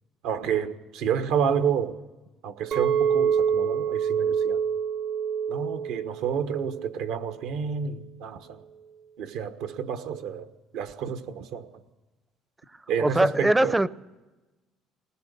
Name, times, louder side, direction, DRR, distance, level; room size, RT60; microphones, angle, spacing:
voice 1, 0.2-2.0 2.4-4.7 5.5-8.6 9.2-10.5 10.7-11.8 12.9-13.8, right 7 dB, 80° right, 1.3 m, -29 dB
Chink clink, 2.7-7.1 7.4-7.8, right 7 dB, 65° right, 1.0 m, -27 dB
voice 2, 13.0-13.9, right 1 dB, 10° right, 0.6 m, -21 dB
20.5 x 20.0 x 6.8 m
supercardioid pair, 95°, 0 cm